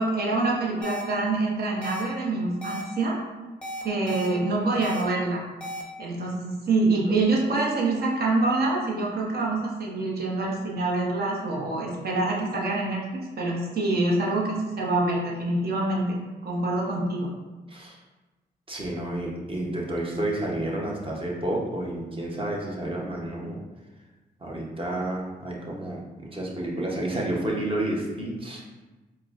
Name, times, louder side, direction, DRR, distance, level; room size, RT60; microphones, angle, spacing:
voice 1, 0.0-3.2 3.8-5.4 6.0-16.1 16.4-17.3, right 2 dB, 55° right, -3 dB, 0.9 m, -26 dB
sound 1, 0.8-1.0 1.8-2.0 2.6-2.8 3.6-4.3 4.8-5.0 5.6-5.8, equal, 5° left, 0.7 m, -34 dB
voice 2, 18.7-23.6 24.4-28.6, right 1 dB, 30° right, -2 dB, 0.9 m, -30 dB
4.6 x 2.1 x 2.5 m, 1.2 s
cardioid pair, 60°, 19 cm